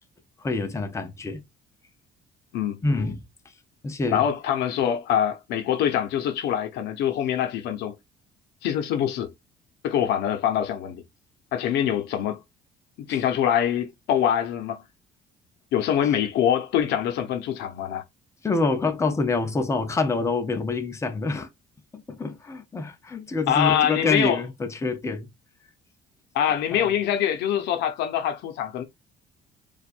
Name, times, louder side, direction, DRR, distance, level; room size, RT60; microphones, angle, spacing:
voice 1, 0.4-1.4 2.8-3.2 3.8-4.3 13.1-13.2 18.4-21.5 21.9-25.3 26.7-26.9, left 3 dB, 15° left, 0.7 m, -26 dB
voice 2, 4.1-7.9 8.6-9.3 9.8-11.0 11.5-12.4 13.0-14.8 15.7-18.0 23.5-24.4 26.3-28.8, left 9 dB, 80° left, 0.8 m, -24 dB
4.3 x 2.5 x 2.5 m
cardioid pair, 110°, 17 cm